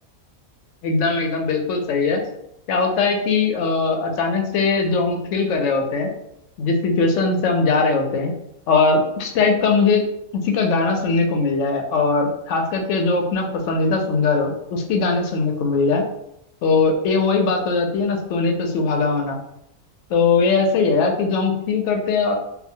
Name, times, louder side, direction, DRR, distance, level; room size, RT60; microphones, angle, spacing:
voice 1, 0.8-2.2 2.7-6.1 6.6-8.3 8.7-10.0 10.3-16.0 16.6-19.4 20.1-22.3, left 4 dB, 70° left, 2 dB, 0.8 m, -20 dB
2.9 x 2.3 x 2.6 m, 0.80 s
omnidirectional pair, 1.5 m